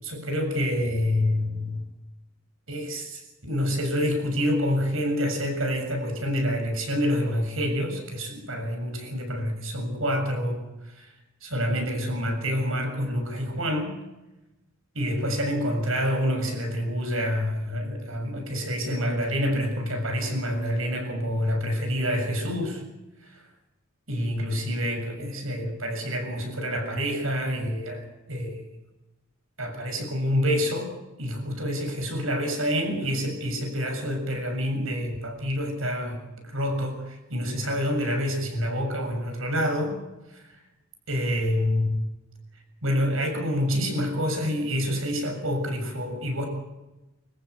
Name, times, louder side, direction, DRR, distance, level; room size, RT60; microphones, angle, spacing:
voice 1, 0.0-1.8 2.7-11.1 11.4-14.0 15.0-22.8 23.2-23.4 24.1-28.6 29.6-30.9 31.2-40.0 40.3-40.4 41.1-42.0 42.8-46.5, equal, 75° right, 4 dB, 7.1 m, -27 dB
26.0 x 15.0 x 8.2 m, 1.0 s
head